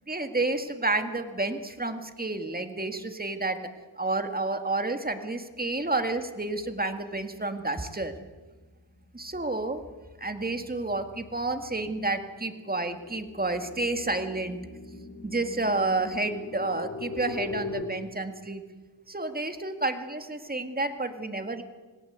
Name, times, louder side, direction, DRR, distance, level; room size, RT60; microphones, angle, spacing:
voice 1, 0.1-3.6 4.0-8.1 9.1-9.8 10.2-14.6 15.2-18.6 19.1-21.6, right 2 dB, 20° right, 7 dB, 2.0 m, -30 dB
sound 1, 8.3-8.5 8.9-17.8, left 3 dB, 30° left, 6.2 m, -41 dB
27.5 x 18.0 x 8.2 m, 1.3 s
wide cardioid pair, 95°, 44 cm